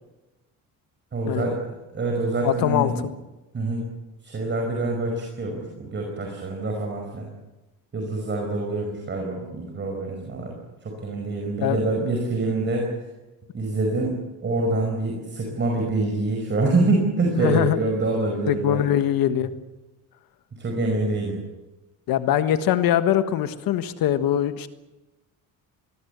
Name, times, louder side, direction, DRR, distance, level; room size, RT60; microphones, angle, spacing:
voice 1, 1.1-2.9 3.5-3.9 4.2-7.3 7.9-10.5 10.8-12.9 13.5-18.9 20.5-21.4, right 2 dB, 35° right, 1 dB, 5.2 m, -26 dB
voice 2, 2.4-3.1 11.6-11.8 17.4-17.8 18.5-19.5 22.1-24.7, left 11 dB, 80° left, 11 dB, 1.5 m, -22 dB
24.0 x 20.0 x 8.2 m, 1.0 s
cardioid pair, 130°, 34 cm